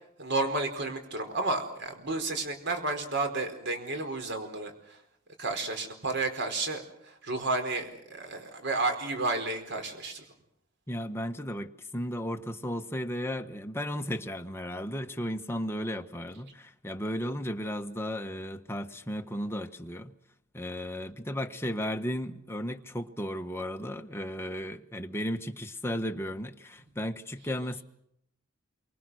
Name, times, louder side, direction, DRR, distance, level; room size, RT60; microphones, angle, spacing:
voice 1, 0.2-5.0 5.4-10.2, right 2 dB, 60° right, 4.6 m, -32 dB
voice 2, 10.9-20.2 20.5-27.8, equal, 10° left, 1.3 m, -35 dB
28.0 x 24.5 x 6.4 m
head